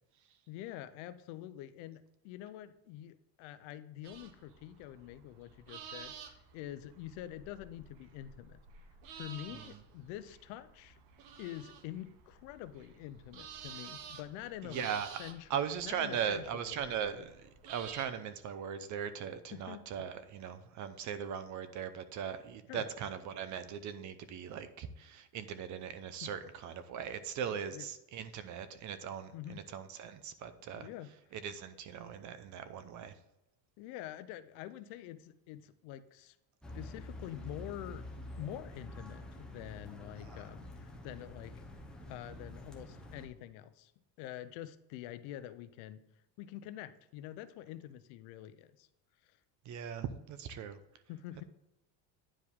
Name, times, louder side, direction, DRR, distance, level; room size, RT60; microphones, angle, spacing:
voice 1, 0.5-6.1 6.5-8.6 9.1-11.0 11.4-15.5 15.8-17.0 19.5-20.1 22.7-22.8 26.2-26.3 27.7-27.9 29.3-29.6 30.8-31.1 33.8-36.4 36.7-38.0 38.4-41.7 42.1-43.9 44.2-46.0 46.4-48.9 49.2-49.4 51.1-51.4, left 12 dB, 80° left, 13 dB, 0.7 m, -46 dB
sound 1, 4.0-18.1, right 7 dB, 60° right, 1.0 m, -52 dB
voice 2, 14.6-15.1 15.5-30.9 31.3-33.2 40.2-40.4 49.6-50.8, right 8 dB, 40° right, 12 dB, 0.6 m, -39 dB
sound 2, 36.6-43.3, left 1 dB, ahead, 0.7 m, -47 dB
10.0 x 4.8 x 3.6 m, 0.91 s
cardioid pair, 165°, 48 cm